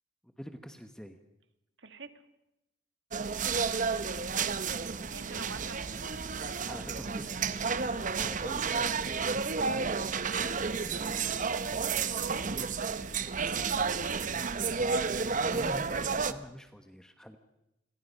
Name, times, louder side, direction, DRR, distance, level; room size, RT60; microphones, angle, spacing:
voice 1, 0.2-1.2 6.6-8.6 9.0-9.1 11.2-11.4 11.7-12.2 12.4-12.6 15.4-17.4, equal, 5° left, 7 dB, 1.1 m, -46 dB
voice 2, 1.8-2.1 4.8-6.1 9.9-10.5 12.1-12.5 13.2-14.6, right 4 dB, 75° right, 9 dB, 1.8 m, -46 dB
sound 1, 3.1-16.3, right 5 dB, 45° right, 0.8 m, -31 dB
sound 2, 5.3-16.4, equal, 80° left, 3.5 m, -56 dB
29.0 x 22.0 x 5.5 m, 0.90 s
head